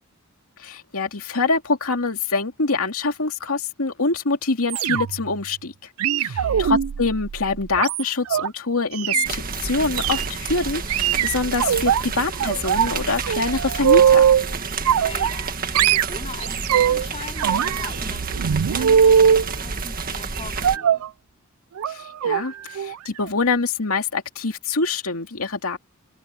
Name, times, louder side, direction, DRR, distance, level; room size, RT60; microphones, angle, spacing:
voice 1, 0.6-5.9 6.2-14.3 21.9-25.8, left 3 dB, 85° left, 2.5 m, -25 dB
sound 1, 4.7-5.3 6.0-8.5 8.9-9.3 10.0-10.3 10.9-12.0 12.4-12.9 13.2-14.5 14.8-15.5 15.7-17.1 17.4-19.5 20.6-21.1 21.8-21.9 22.2-22.4 22.7-22.9 23.2-23.3, right 8 dB, 90° right, 0.4 m, -20 dB
voice 2, 6.2-6.8 14.7-21.0, left 3 dB, 30° left, 3.5 m, -41 dB
sound 2, 9.2-20.8, right 4 dB, 45° right, 1.8 m, -30 dB
head